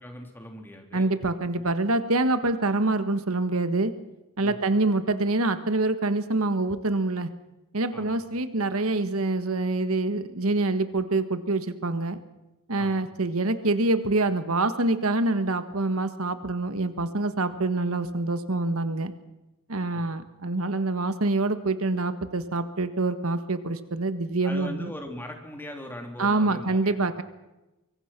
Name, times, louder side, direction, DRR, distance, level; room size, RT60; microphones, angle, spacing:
voice 1, 0.0-1.1 4.4-4.6 7.9-8.2 12.8-13.0 19.9-20.1 24.4-27.0, equal, 10° left, 3 dB, 3.5 m, -40 dB
voice 2, 0.9-3.9 4.4-7.3 7.7-12.2 12.7-19.1 19.7-24.9 26.2-27.2, right 2 dB, 70° right, 11 dB, 1.5 m, -26 dB
24.5 x 23.5 x 6.0 m, 1.0 s
head